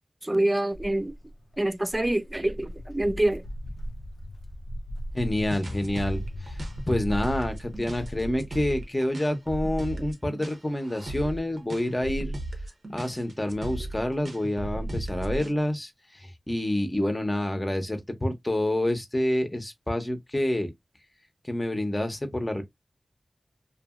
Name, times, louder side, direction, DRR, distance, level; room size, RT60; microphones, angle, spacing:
voice 1, 0.2-1.1 1.6-3.4, right 1 dB, 20° right, 0.3 m, -26 dB
Walk footsteps, 0.7-8.4, equal, 75° left, 0.6 m, -38 dB
voice 2, 5.1-6.6 6.9-12.4 12.9-20.7 21.4-22.6, left 1 dB, 20° left, 0.8 m, -28 dB
sound 1, 5.5-15.6, right 1 dB, 70° right, 0.8 m, -36 dB
2.8 x 2.5 x 2.4 m
wide cardioid pair, 85°, 0 cm